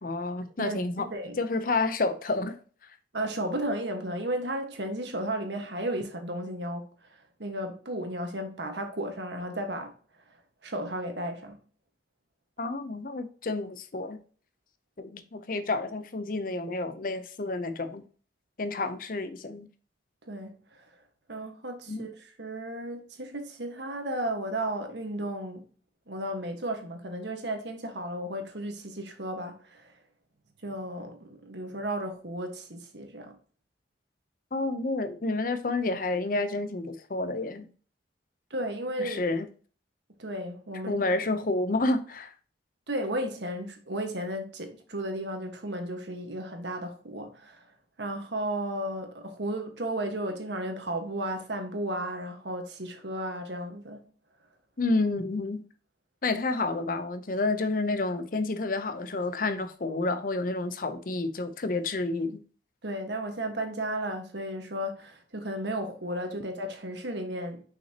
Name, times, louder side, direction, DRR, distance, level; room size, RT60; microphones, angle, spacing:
voice 1, 0.0-1.1 1.4-2.6 12.6-14.2 15.0-18.0 18.6-19.7 21.9-22.1 34.5-37.7 39.0-39.5 40.9-42.3 54.8-55.6 56.2-62.4, left 2 dB, 50° left, 0.6 m, -29 dB
voice 2, 0.6-1.4 3.1-6.9 7.4-9.9 10.6-11.6 20.3-20.8 21.3-25.6 26.1-29.9 30.6-33.3 38.5-39.2 40.2-41.0 42.9-47.6 48.0-54.0 62.8-67.6, right 1 dB, 80° right, 1.5 m, -34 dB
6.1 x 5.8 x 2.9 m
head